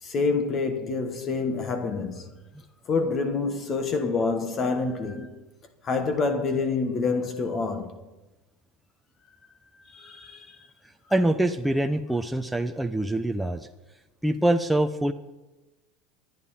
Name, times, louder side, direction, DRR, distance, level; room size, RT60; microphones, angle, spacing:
voice 1, 0.0-2.3 2.9-5.4 5.8-8.0 9.9-10.6, left 4 dB, 35° left, 1.5 m, -27 dB
voice 2, 11.1-13.7 14.2-15.1, right 1 dB, 5° right, 0.7 m, -24 dB
25.0 x 9.4 x 4.3 m
supercardioid pair, 105°, 0 cm